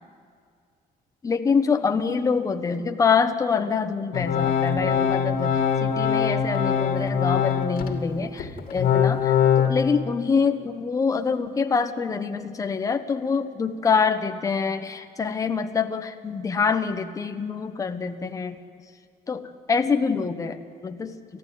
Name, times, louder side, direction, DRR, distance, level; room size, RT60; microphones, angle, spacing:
voice 1, 1.2-18.6 19.3-21.1, left 5 dB, 20° left, 6 dB, 1.2 m, -25 dB
Organ, 4.1-7.9 8.4-9.7, left 8 dB, 65° left, 2.5 m, -22 dB
29.5 x 15.0 x 9.4 m, 2.2 s
cardioid pair, 170°, 16 cm